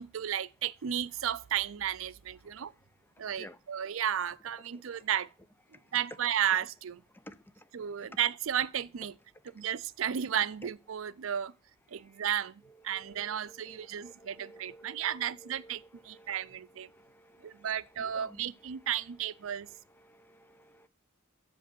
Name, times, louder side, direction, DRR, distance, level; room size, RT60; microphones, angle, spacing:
voice 1, 0.0-2.7 3.2-5.3 5.9-7.0 7.7-9.2 9.5-11.5 11.9-16.9 17.4-19.7, right 9 dB, 70° right, 0.4 m, -33 dB
voice 2, 12.9-16.5 16.9-17.7 18.0-18.4 20.0-20.9, equal, 10° left, 0.4 m, -53 dB
6.7 x 5.1 x 6.9 m
head